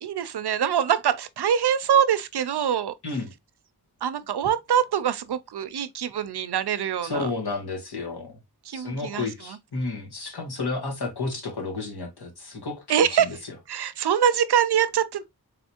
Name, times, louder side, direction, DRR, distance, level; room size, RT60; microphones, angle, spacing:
voice 1, 0.0-2.9 4.0-7.3 8.7-9.6 12.9-13.4 13.7-15.2, right 9 dB, 85° right, 0.5 m, -24 dB
voice 2, 7.0-8.4 8.7-12.8 13.1-13.3, left 3 dB, 80° left, 1.3 m, -31 dB
3.7 x 3.4 x 2.8 m
wide cardioid pair, 45°, 38 cm